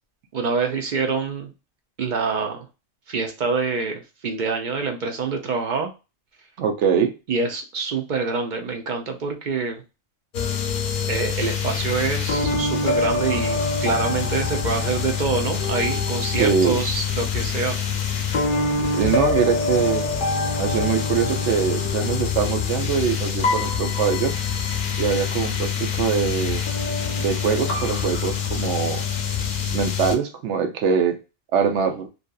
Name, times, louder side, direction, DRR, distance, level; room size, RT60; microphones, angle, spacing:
voice 1, 0.3-1.5 2.0-2.7 3.1-5.9 7.3-9.8 11.1-17.8 18.7-18.8, right 4 dB, 55° right, 4 dB, 0.6 m, -26 dB
voice 2, 6.6-7.1 16.4-16.8 18.9-20.1 20.6-24.4 25.0-26.6 27.2-29.0 29.7-31.2 31.5-32.1, right 7 dB, 90° right, 5 dB, 0.9 m, -23 dB
sound 1, 10.3-30.2, left 5 dB, 55° left, 0.6 m, -25 dB
2.8 x 2.4 x 2.2 m, 0.28 s
omnidirectional pair, 1.2 m